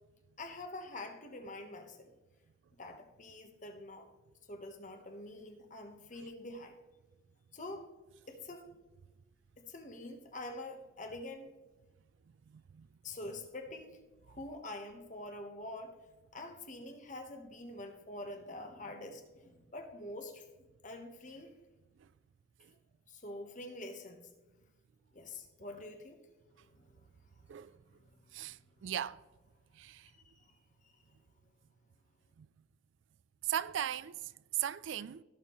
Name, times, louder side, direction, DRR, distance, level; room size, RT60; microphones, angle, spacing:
voice 1, 0.4-2.1 2.8-4.1 4.5-6.8 7.5-7.9 8.3-8.7 9.6-11.5 13.0-16.0 16.3-20.4 20.8-21.5 23.1-24.2 25.1-26.2 26.6-27.1 27.4-28.9 30.2-31.2, left 2 dB, 40° left, 1.3 m, -46 dB
voice 2, 12.5-12.9 22.0-22.1 27.5-27.7 28.3-29.2 29.7-30.1 32.4-32.5 33.4-35.2, right 11 dB, 70° right, 0.3 m, -38 dB
17.0 x 6.7 x 3.1 m
head